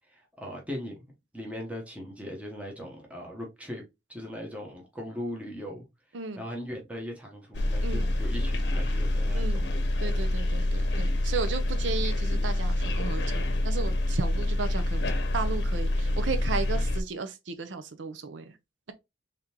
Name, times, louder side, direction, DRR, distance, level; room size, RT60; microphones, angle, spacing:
voice 1, 0.1-3.8 4.1-5.9 6.4-9.6, equal, 10° right, 0.9 m, -39 dB
sound 1, 7.5-17.0, left 1 dB, 65° left, 0.7 m, -27 dB
voice 2, 7.8-8.1 9.3-9.7 10.0-18.5, right 4 dB, 90° right, 0.6 m, -34 dB
3.7 x 3.3 x 2.8 m
head